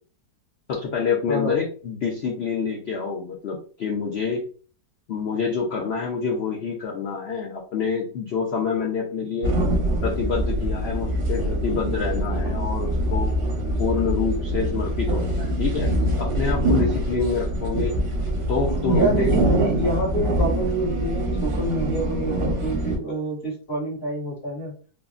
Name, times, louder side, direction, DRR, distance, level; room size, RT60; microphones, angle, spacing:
voice 1, 0.7-4.4 5.1-9.5 10.0-13.3 13.8-18.0 18.5-19.4, left 5 dB, 85° left, -2 dB, 0.5 m, -27 dB
voice 2, 1.3-1.6 18.9-24.7, right 1 dB, 40° left, -4 dB, 1.6 m, -27 dB
Cartilage with rubber, 9.4-23.0, right 1 dB, 55° right, 0.7 m, -24 dB
3.5 x 2.1 x 2.4 m, 0.39 s
omnidirectional pair, 1.8 m